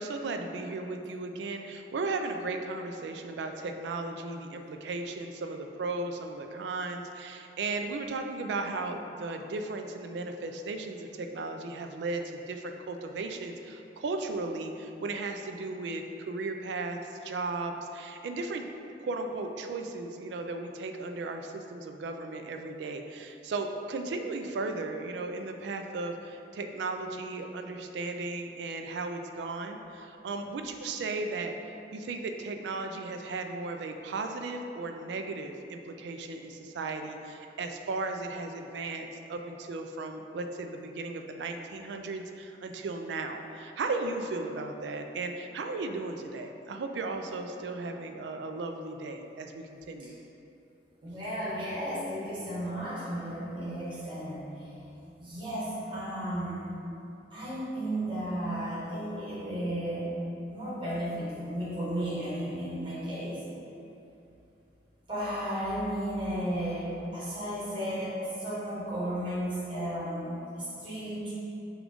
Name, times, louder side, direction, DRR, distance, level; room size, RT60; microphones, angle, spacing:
voice 1, 0.0-18.6 19.0-31.5 31.9-50.1, right 3 dB, 75° right, 5 dB, 0.3 m, -36 dB
voice 2, 51.0-54.5 55.2-56.7 57.3-60.1 60.5-63.4 65.1-71.3, equal, 30° right, -9 dB, 1.2 m, -34 dB
5.0 x 2.3 x 3.5 m, 2.8 s
head